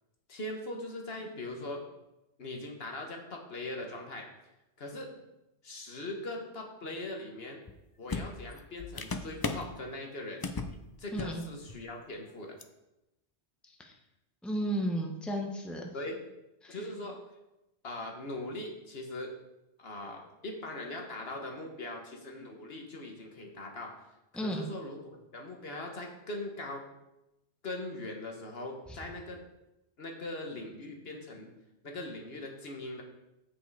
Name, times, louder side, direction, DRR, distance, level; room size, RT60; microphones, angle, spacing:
voice 1, 0.3-1.8 2.4-4.3 4.8-5.1 5.6-7.6 8.0-10.5 11.0-12.6 15.9-16.3 16.7-17.2 17.8-19.3 19.8-23.9 24.3-26.9 27.6-29.4 30.0-31.5 31.8-33.0, left 2 dB, 65° left, 2 dB, 1.4 m, -40 dB
sound 1, 7.7-7.8 8.1-9.7 10.4-10.8 11.1-11.4 11.7-11.9 12.6-12.7, left 3 dB, 35° left, 0.3 m, -36 dB
voice 2, 11.1-11.4 13.7-13.9 14.4-15.9 16.6-16.8 24.3-24.6, right 1 dB, ahead, 1 dB, 1.0 m, -34 dB
8.0 x 6.7 x 4.7 m, 0.93 s
omnidirectional pair, 1.1 m